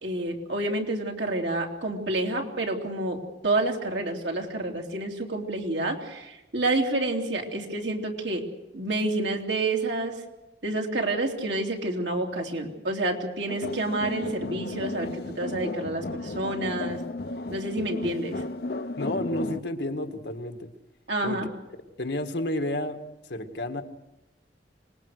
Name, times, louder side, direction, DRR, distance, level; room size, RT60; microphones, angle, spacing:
voice 1, 0.0-8.4 8.7-10.2 10.6-17.0 17.5-18.4 21.1-21.4, right 2 dB, 80° right, 1 dB, 3.2 m, -29 dB
sound 1, 13.5-19.6, left 2 dB, 60° left, 0.7 m, -34 dB
voice 2, 19.0-20.7 21.2-21.5 22.0-23.8, left 1 dB, 75° left, 6 dB, 1.8 m, -31 dB
25.5 x 20.5 x 6.6 m, 0.97 s
head